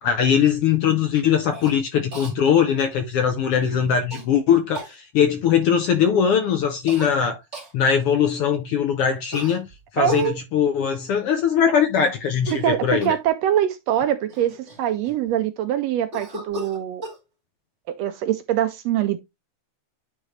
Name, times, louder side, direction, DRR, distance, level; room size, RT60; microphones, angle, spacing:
voice 1, 0.0-7.4 7.7-9.7 9.9-13.1, left 8 dB, 70° left, 1.5 m, -21 dB
Cough, 1.5-1.7 2.1-2.3 4.1-4.2 4.7-4.9 6.9-7.1 7.5-7.7 9.3-10.3 12.3-12.7 13.0-13.3 14.0-14.1 14.3-15.3 16.1-17.2, equal, 25° right, 2.6 m, -35 dB
voice 2, 10.0-10.4 12.5-17.1 17.9-19.2, right 11 dB, 80° right, 1.6 m, -23 dB
9.5 x 3.8 x 3.1 m
omnidirectional pair, 3.3 m